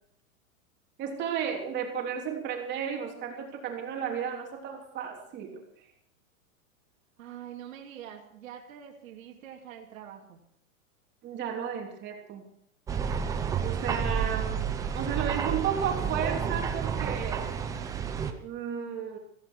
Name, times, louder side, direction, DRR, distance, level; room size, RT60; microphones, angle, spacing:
voice 1, 1.0-5.6 11.2-12.4 13.6-17.5 18.4-19.2, right 8 dB, 25° right, 1 dB, 3.3 m, -33 dB
voice 2, 7.2-10.4 13.6-14.0, right 10 dB, 70° right, 0 dB, 2.9 m, -46 dB
sound 1, 12.9-18.3, right 7 dB, 10° right, 0.6 m, -30 dB
16.0 x 15.5 x 4.7 m, 0.75 s
supercardioid pair, 160°, 42 cm